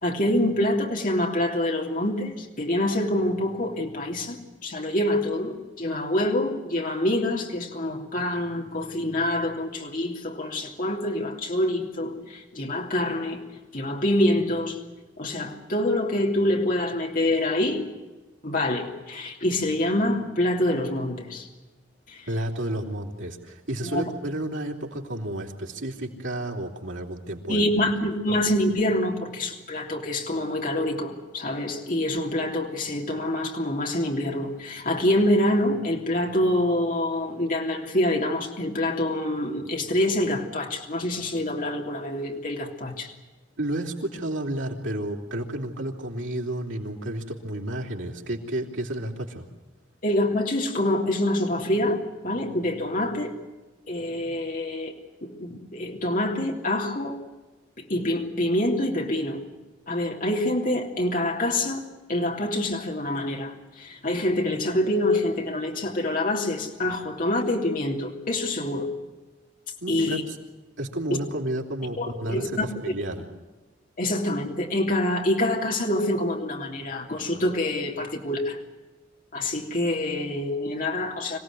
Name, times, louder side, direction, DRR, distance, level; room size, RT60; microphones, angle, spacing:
voice 1, 0.0-13.4 13.7-14.8 15.2-17.9 18.4-21.5 22.1-22.3 23.9-24.0 27.5-43.1 50.0-53.3 53.9-54.9 55.2-57.2 57.8-59.4 59.9-68.9 69.9-70.2 71.1-71.2 72.0-72.7 74.0-78.6 79.3-81.4, left 1 dB, 45° left, 1 dB, 3.1 m, -26 dB
voice 2, 22.3-27.7 43.6-49.5 69.8-70.4 70.8-73.3, right 1 dB, 85° right, 1 dB, 3.6 m, -31 dB
26.0 x 17.0 x 9.4 m, 1.2 s
head